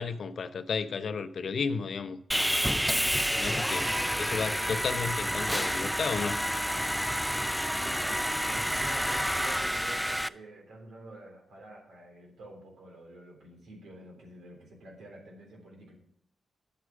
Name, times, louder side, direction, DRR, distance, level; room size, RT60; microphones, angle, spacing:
voice 1, 0.0-2.2 2.7-3.0 3.3-3.8 4.2-6.4, left 5 dB, 65° left, 11 dB, 0.7 m, -33 dB
Sawing, 2.3-10.3, equal, ahead, 0.4 m, -29 dB
voice 2, 3.8-4.2 7.7-8.2 8.4-16.0, right 2 dB, 85° right, 0 dB, 3.5 m, -48 dB
9.2 x 8.2 x 4.9 m, 0.69 s
cardioid pair, 70°, 0 cm